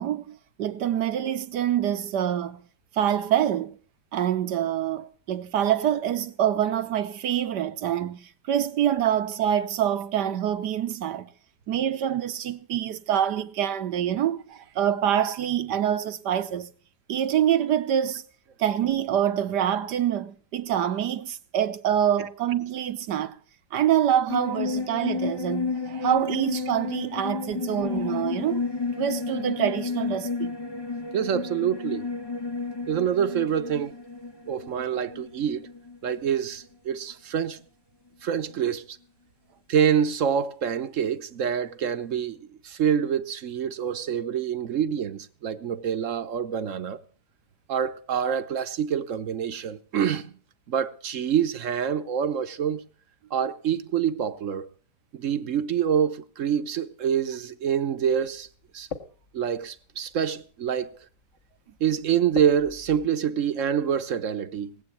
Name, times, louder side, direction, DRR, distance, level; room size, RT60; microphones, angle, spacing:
voice 1, 0.0-2.6 2.9-3.8 4.1-11.3 11.7-16.7 17.1-18.2 18.6-23.4 23.7-28.6 29.0-30.5, right 10 dB, 75° right, 1.6 m, -26 dB
sound 1, 24.3-36.2 36.5-36.6, left 4 dB, 15° left, 1.0 m, -32 dB
voice 2, 31.1-32.1 32.9-34.0 34.5-35.7 36.0-37.6 38.2-39.0 39.7-47.0 47.7-50.4 50.7-52.8 53.3-54.7 55.1-58.5 58.7-58.9 59.3-60.9 61.8-64.8, right 8 dB, 50° right, 1.2 m, -26 dB
sound 2, 58.1-63.1, left 5 dB, 45° left, 1.8 m, -44 dB
19.5 x 8.4 x 8.3 m
omnidirectional pair, 1.9 m